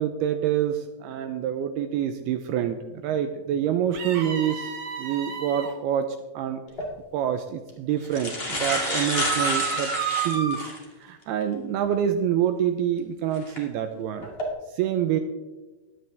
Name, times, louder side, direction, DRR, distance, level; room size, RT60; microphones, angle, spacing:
voice 1, 0.0-4.7 5.0-6.1 6.4-6.6 7.1-10.6 11.0-14.3 14.7-15.2, right 10 dB, 80° right, 8 dB, 2.4 m, -26 dB
sound 1, 3.9-5.7 8.6-10.7, right 6 dB, 60° right, 1.7 m, -31 dB
sound 2, 6.7-6.9 7.7-7.8 8.0-10.8 11.4-11.5 13.3-13.6 14.2-14.4, left 1 dB, 60° left, 0.6 m, -29 dB
15.5 x 10.5 x 3.4 m, 1.1 s
omnidirectional pair, 5.0 m